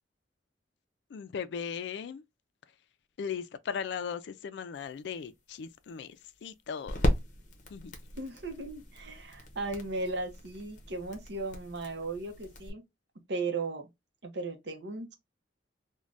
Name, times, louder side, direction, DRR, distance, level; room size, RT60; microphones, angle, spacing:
voice 1, 1.1-2.2 3.2-7.0 7.7-7.9, left 6 dB, 70° left, 0.3 m, -38 dB
sound 1, 4.8-12.7, equal, 40° left, 0.7 m, -36 dB
voice 2, 8.2-12.8 13.3-13.9 14.2-15.1, right 3 dB, 65° right, 0.7 m, -36 dB
2.5 x 2.2 x 3.2 m
head